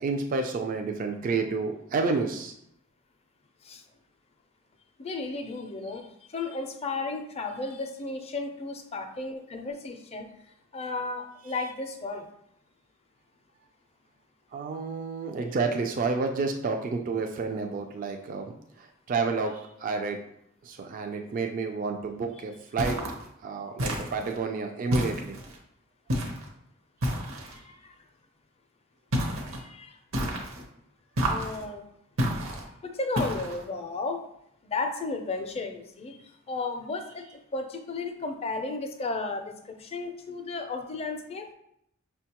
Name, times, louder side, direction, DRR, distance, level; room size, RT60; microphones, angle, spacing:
voice 1, 0.0-2.5 14.5-18.5 18.8-20.2 20.6-23.0 23.4-25.4, right 4 dB, 40° right, 4 dB, 0.3 m, -30 dB
voice 2, 5.0-10.3 10.7-12.3 27.5-27.9 29.5-30.0 31.3-31.8 32.8-34.2 34.6-41.5, left 3 dB, 30° left, 5 dB, 0.4 m, -34 dB
sound 1, 22.8-23.2 23.8-24.4 24.9-25.6 26.1-26.5 27.0-27.6 29.1-29.6 30.1-30.6 31.2-31.6 32.2-32.6 33.2-33.6, equal, 70° right, 0.8 m, -30 dB
5.6 x 2.2 x 2.8 m, 0.76 s
head